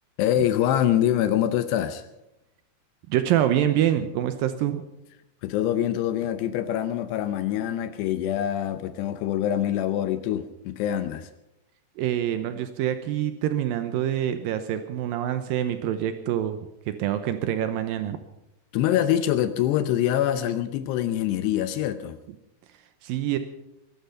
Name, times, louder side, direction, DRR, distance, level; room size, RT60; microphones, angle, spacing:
voice 1, 0.2-2.0 5.4-11.3 18.7-22.2, left 11 dB, 80° left, 11 dB, 2.7 m, -25 dB
voice 2, 3.1-4.9 12.0-16.6 16.9-18.2 23.0-23.4, right 11 dB, 90° right, 9 dB, 2.0 m, -26 dB
21.5 x 12.0 x 5.6 m, 0.88 s
omnidirectional pair, 5.2 m